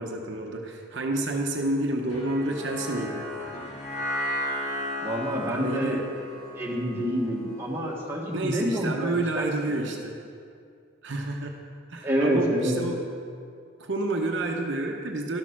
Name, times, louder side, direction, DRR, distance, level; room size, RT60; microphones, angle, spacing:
voice 1, 0.0-3.3 5.6-6.0 8.3-10.1 11.0-11.6 11.9-13.0 13.8-15.4, right 2 dB, 60° right, 1 dB, 0.8 m, -29 dB
sound 1, 2.1-8.5, equal, 30° left, 2.0 m, -34 dB
voice 2, 5.0-6.0 6.6-9.8 12.0-12.8, equal, 10° right, -4 dB, 1.5 m, -28 dB
12.5 x 6.5 x 6.0 m, 2.3 s
head